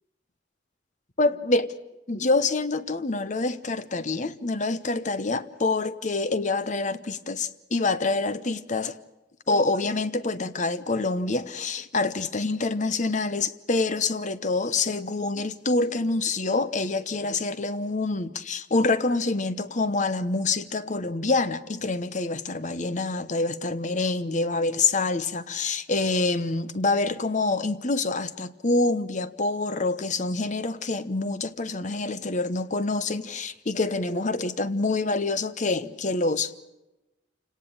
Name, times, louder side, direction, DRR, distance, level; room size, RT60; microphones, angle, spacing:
voice 1, 1.2-1.7 2.1-9.0 9.5-36.6, left 3 dB, 45° left, 1.0 m, -26 dB
28.0 x 18.5 x 8.8 m
head